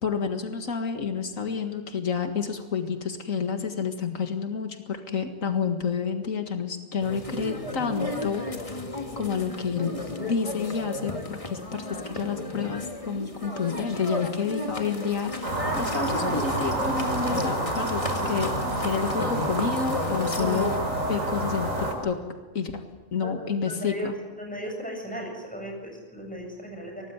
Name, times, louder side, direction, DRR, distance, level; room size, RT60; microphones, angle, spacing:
voice 1, 0.0-8.4 9.2-10.0 10.2-18.5 18.8-20.8 21.1-22.2 22.5-22.8 23.1-24.2, left 6 dB, 85° left, 6 dB, 2.2 m, -29 dB
sound 1, 7.0-20.8, left 2 dB, 25° left, 2.1 m, -34 dB
sound 2, 15.4-21.9, right 1 dB, 80° right, 5.3 m, -28 dB
voice 2, 23.7-24.1 24.4-27.0, equal, 5° left, 1 dB, 7.5 m, -36 dB
23.5 x 19.0 x 9.5 m, 1.3 s
omnidirectional pair, 1.3 m